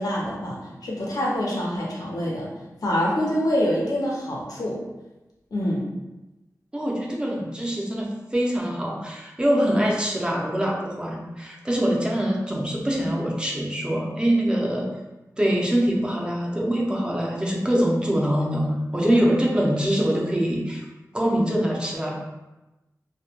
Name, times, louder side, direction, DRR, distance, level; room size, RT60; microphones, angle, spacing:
voice 1, 0.0-2.5 2.8-4.8 5.5-5.8 19.1-19.4, equal, 80° left, -4 dB, 0.6 m, -25 dB
voice 2, 6.7-14.9 15.4-20.8 21.1-22.2, equal, 15° right, -2 dB, 0.5 m, -24 dB
2.1 x 2.1 x 2.8 m, 1.0 s
wide cardioid pair, 95°, 6 cm